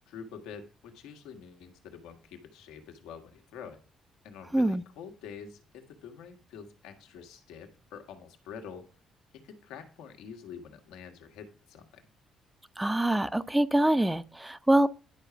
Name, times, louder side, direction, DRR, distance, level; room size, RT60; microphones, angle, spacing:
voice 1, 0.0-3.8 4.2-8.9 9.3-12.0, left 7 dB, 85° left, 1.5 m, -46 dB
voice 2, 4.5-4.8 12.8-14.9, right 1 dB, 10° right, 0.7 m, -25 dB
10.5 x 4.9 x 5.8 m
supercardioid pair, 60°, 0 cm